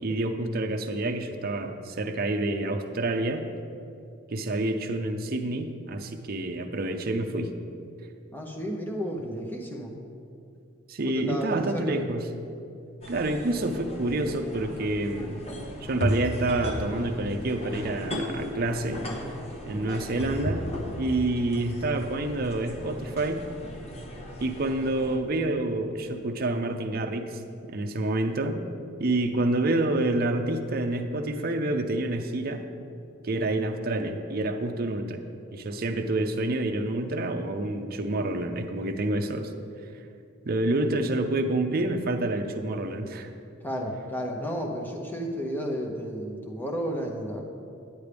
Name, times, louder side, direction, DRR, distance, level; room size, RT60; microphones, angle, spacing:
voice 1, 0.0-3.4 4.3-7.5 10.9-12.3 13.1-15.4 15.8-19.0 19.7-20.6 21.0-23.4 24.4-27.4 27.7-28.6 29.0-32.7 33.2-35.2 35.5-39.5 40.4-43.3, right 2 dB, 50° right, 5 dB, 0.6 m, -28 dB
voice 2, 8.3-9.9 11.0-12.0 43.6-47.4, equal, 10° left, 1 dB, 0.8 m, -32 dB
sound 1, 13.0-25.2, equal, 30° left, 1.0 m, -35 dB
9.7 x 9.6 x 3.4 m, 2.5 s
head